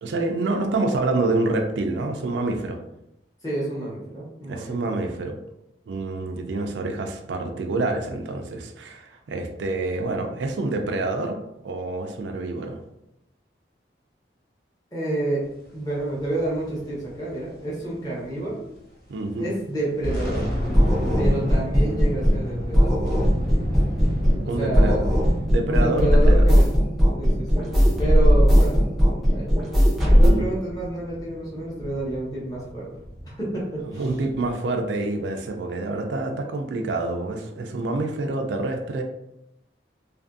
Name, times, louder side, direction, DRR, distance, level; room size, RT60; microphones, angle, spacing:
voice 1, 0.0-2.8 4.5-5.3 5.9-11.4 11.6-12.8 19.1-19.4 24.5-25.0 25.4-26.6 30.1-30.4 34.0-39.0, right 2 dB, 80° right, 4 dB, 0.4 m, -27 dB
voice 2, 3.4-5.0 14.9-18.6 19.4-20.5 21.2-23.0 24.4-25.0 25.7-26.8 27.2-27.7 28.0-28.9 29.3-29.5 30.1-32.9 33.4-34.1, right 2 dB, 20° left, -6 dB, 0.9 m, -29 dB
sound 1, 16.0-18.8 19.1-19.2 19.7-34.5, equal, 55° left, 0.5 m, -32 dB
sound 2, 20.7-22.5 22.7-24.5 24.7-30.3, equal, ahead, 0.6 m, -18 dB
2.6 x 2.5 x 2.5 m, 0.85 s
head